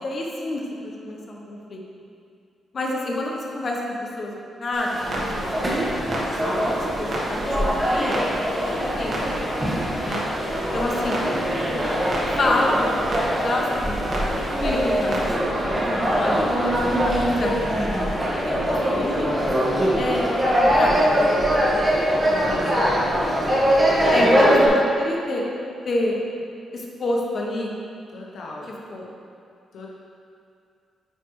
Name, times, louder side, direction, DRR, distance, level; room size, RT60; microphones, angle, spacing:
voice 1, 0.0-1.8 2.7-3.8 4.2-5.0 5.3-5.5 6.2-8.2 8.6-9.3 10.0-10.2 10.7-11.2 12.4-12.8 13.4-14.1 14.6-15.6 15.9-19.3 19.9-20.3 20.6-20.9 21.3-21.9 24.1-25.4 25.9-26.2 26.7-27.7 28.9-29.1, left 1 dB, 45° left, -2 dB, 1.0 m, -28 dB
Clock, 4.7-15.3, right 1 dB, 50° right, 1.4 m, -34 dB
sound 1, 4.9-24.7, equal, 20° right, 1.5 m, -22 dB
voice 2, 22.4-22.9 24.1-24.5 28.1-28.7 29.7-29.9, left 3 dB, 70° left, -3 dB, 0.7 m, -35 dB
9.7 x 4.6 x 3.2 m, 2.4 s
cardioid pair, 130°, 0 cm